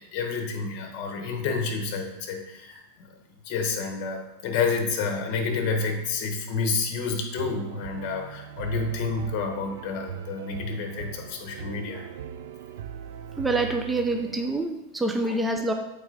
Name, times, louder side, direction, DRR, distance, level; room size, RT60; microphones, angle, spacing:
voice 1, 0.0-3.1 3.4-12.0 15.2-15.4, left 4 dB, 50° left, 3 dB, 1.2 m, -29 dB
sound 1, 7.4-14.6, right 8 dB, 70° right, 0.4 m, -40 dB
voice 2, 13.4-15.7, right 2 dB, 5° right, 4 dB, 0.4 m, -26 dB
8.3 x 3.4 x 3.4 m, 0.93 s
supercardioid pair, 135°, 0 cm